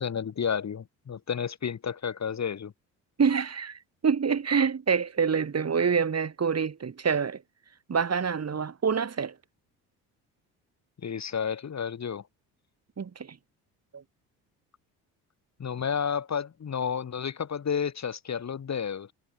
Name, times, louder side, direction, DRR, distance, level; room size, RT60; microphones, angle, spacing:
voice 1, 0.0-2.7 11.0-12.2 15.6-19.1, left 7 dB, 40° left, 3.7 m, -31 dB
voice 2, 3.2-7.4 7.9-9.4 13.0-13.4 13.9-14.0, right 6 dB, 40° right, 7.6 m, -26 dB
supercardioid pair, 70°, 40 cm